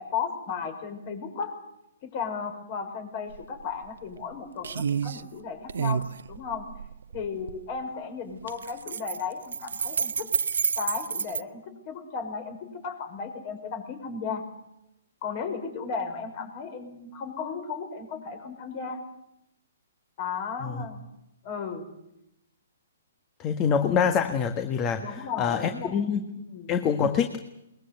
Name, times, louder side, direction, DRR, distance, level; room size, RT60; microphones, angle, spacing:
voice 1, 0.0-1.6 2.0-6.6 7.1-10.3 10.8-12.6 12.8-14.4 15.2-19.0 20.2-21.0 21.4-21.9 25.0-26.1 26.3-26.7, left 6 dB, 40° left, 7 dB, 5.8 m, -35 dB
sound 1, 3.3-3.4 3.8-4.3 4.6-5.2 5.7-7.6 8.4-11.4, right 7 dB, 70° right, 0.8 m, -29 dB
voice 2, 23.4-26.2 26.7-27.4, left 7 dB, 25° left, 8 dB, 1.5 m, -25 dB
21.5 x 21.0 x 8.1 m, 0.86 s
hypercardioid pair, 130°, 0 cm